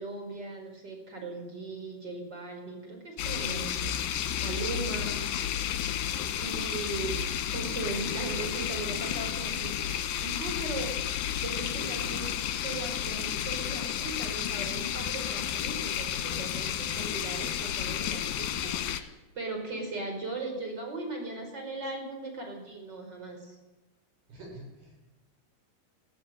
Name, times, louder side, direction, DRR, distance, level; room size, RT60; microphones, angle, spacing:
voice 1, 0.0-5.2 6.4-11.0 11.4-23.6, right 2 dB, 25° right, 2 dB, 5.4 m, -38 dB
sound 1, 3.2-19.0, left 10 dB, 70° left, 3.0 m, -32 dB
voice 2, 24.3-25.1, right 1 dB, 75° right, -1 dB, 9.1 m, -47 dB
19.5 x 15.0 x 8.9 m, 1.1 s
omnidirectional pair, 4.5 m